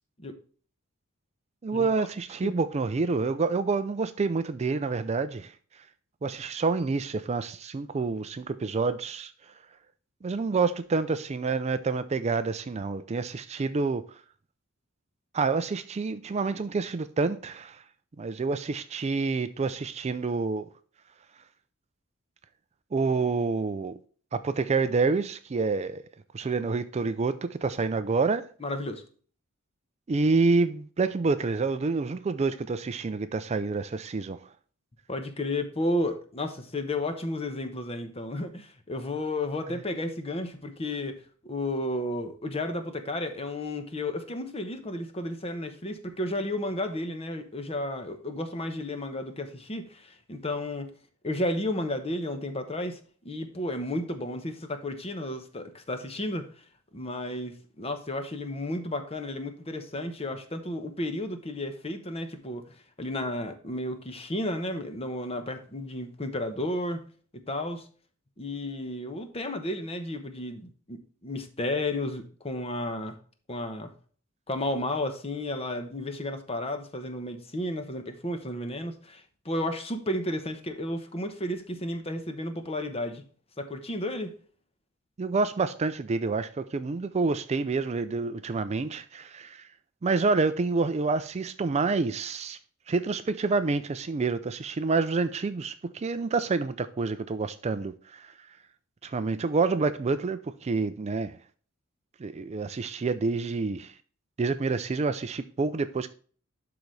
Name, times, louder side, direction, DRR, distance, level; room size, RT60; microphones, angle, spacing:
voice 1, 1.6-5.5 6.2-9.3 10.2-14.2 15.3-17.8 18.2-20.7 22.9-24.0 24.3-26.0 26.3-28.5 30.1-34.4 85.2-89.7 90.0-92.6 92.9-98.3 99.0-101.4 102.2-103.9 104.4-106.1, right 4 dB, 30° right, 0.4 m, -28 dB
voice 2, 28.6-29.0 35.1-41.2 41.4-50.9 51.2-53.0 53.2-56.5 56.9-67.0 67.5-67.9 68.4-73.2 73.5-73.9 74.5-83.2 83.6-84.3, left 1 dB, 30° left, 1.0 m, -32 dB
12.0 x 4.0 x 3.2 m
head